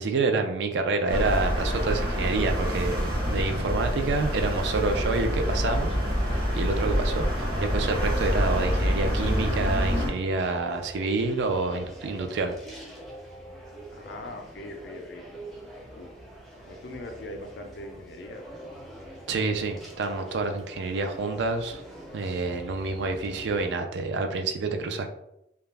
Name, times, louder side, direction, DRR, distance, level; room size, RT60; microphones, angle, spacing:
voice 1, 0.0-6.0 6.2-12.6 19.3-21.8 22.1-25.1, right 3 dB, 65° right, 5 dB, 0.3 m, -28 dB
sound 1, 1.1-10.1, equal, 50° right, 0.8 m, -26 dB
sound 2, 4.3-23.7, right 1 dB, ahead, 0.4 m, -45 dB
voice 2, 13.9-15.2 15.9-16.1 16.7-18.4, left 1 dB, 60° left, 4 dB, 0.4 m, -41 dB
2.3 x 2.0 x 3.2 m, 0.84 s
head